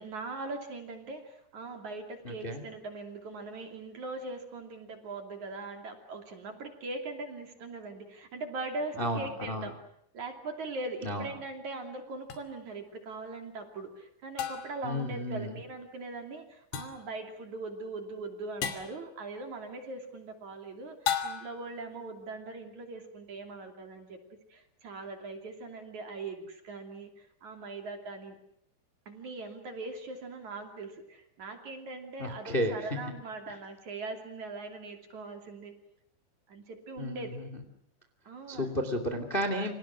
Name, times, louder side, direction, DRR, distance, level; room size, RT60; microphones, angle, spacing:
voice 1, 0.0-9.7 10.1-24.2 24.5-28.4 29.1-35.7 36.5-37.4 38.3-38.7, right 3 dB, 45° right, 5 dB, 3.7 m, -41 dB
voice 2, 2.2-2.6 9.0-9.7 11.0-11.3 14.8-15.6 32.2-33.0 37.0-37.5 38.5-39.7, equal, 15° left, 7 dB, 1.8 m, -32 dB
sound 1, 12.3-12.4 14.4-14.9 16.7-17.1 18.6-19.0 21.1-21.7, left 8 dB, 65° left, 4.4 m, -34 dB
29.5 x 26.0 x 6.4 m, 0.73 s
omnidirectional pair, 5.3 m